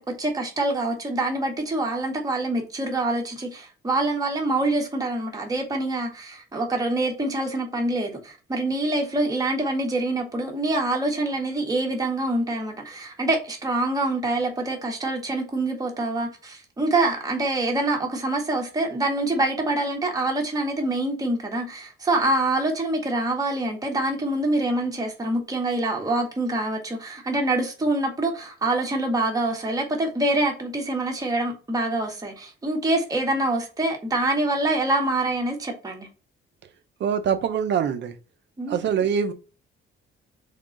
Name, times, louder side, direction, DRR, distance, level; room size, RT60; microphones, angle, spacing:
voice 1, 0.0-36.1 38.6-38.8, right 2 dB, 15° right, 1.1 m, -25 dB
voice 2, 37.0-38.1 38.7-39.3, right 7 dB, 55° right, 0.7 m, -24 dB
3.8 x 3.7 x 3.8 m
cardioid pair, 165°, 21 cm